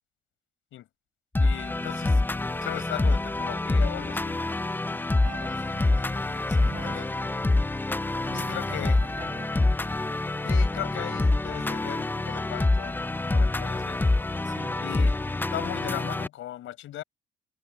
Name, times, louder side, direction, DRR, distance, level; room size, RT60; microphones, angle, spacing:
sound 1, 1.3-16.3, left 2 dB, 10° left, 0.5 m, -26 dB
voice 1, 1.4-2.2 2.6-4.4 6.8-7.0 8.3-9.0 10.4-13.0 13.3-14.2 14.8-15.2 15.5-17.0, left 13 dB, 85° left, 5.4 m, -37 dB
voice 2, 5.2-7.1 8.2-9.6 14.4-14.8, right 5 dB, 40° right, 6.5 m, -44 dB
cardioid pair, 90°, 20 cm